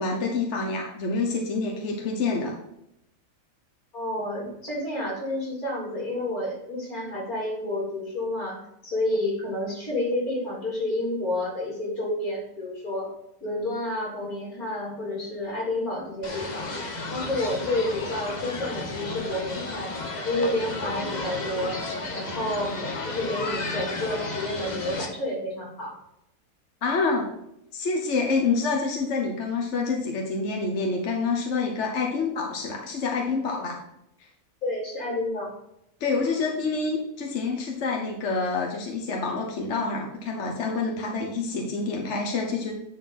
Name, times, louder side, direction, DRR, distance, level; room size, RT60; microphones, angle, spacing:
voice 1, 0.0-2.6 26.8-27.3 27.7-33.8 36.0-42.7, left 4 dB, 55° left, 1 dB, 1.3 m, -27 dB
voice 2, 3.9-8.6 8.8-13.1 13.4-16.7 17.1-20.0 20.2-21.8 22.1-22.8 23.0-26.0 34.6-35.5, left 1 dB, 80° left, -4 dB, 3.9 m, -30 dB
sound 1, 16.2-25.1, left 2 dB, 35° left, 0.9 m, -33 dB
10.0 x 4.3 x 4.2 m, 0.80 s
omnidirectional pair, 1.5 m